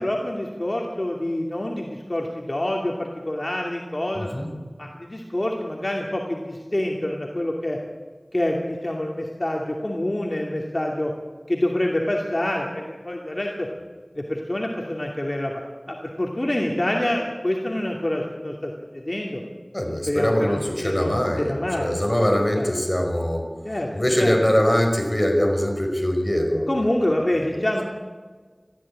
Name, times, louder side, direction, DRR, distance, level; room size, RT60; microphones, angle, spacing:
voice 1, 0.0-4.3 4.8-7.8 8.3-11.1 11.5-13.7 14.2-15.5 15.9-19.4 20.1-21.1 21.4-21.9 22.5-22.8 23.6-23.9 24.2-24.4 26.7-27.8, left 1 dB, 45° left, 0 dB, 2.6 m, -26 dB
voice 2, 4.2-4.5 19.7-23.5 23.9-26.7, equal, 20° left, 3 dB, 5.2 m, -22 dB
21.5 x 14.5 x 8.7 m, 1.5 s
wide cardioid pair, 40°, 0 cm